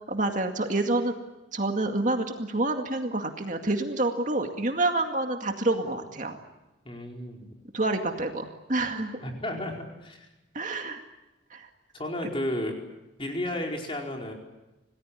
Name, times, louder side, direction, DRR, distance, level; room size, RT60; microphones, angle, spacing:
voice 1, 0.1-1.1 1.5-6.4 7.7-9.1 10.5-11.0 11.5-11.7, right 2 dB, 40° right, 4 dB, 2.2 m, -28 dB
voice 2, 6.8-7.5 9.2-10.3 11.9-12.7 13.2-14.3, left 1 dB, 30° left, 1 dB, 4.7 m, -33 dB
27.5 x 19.0 x 10.0 m, 1.0 s
head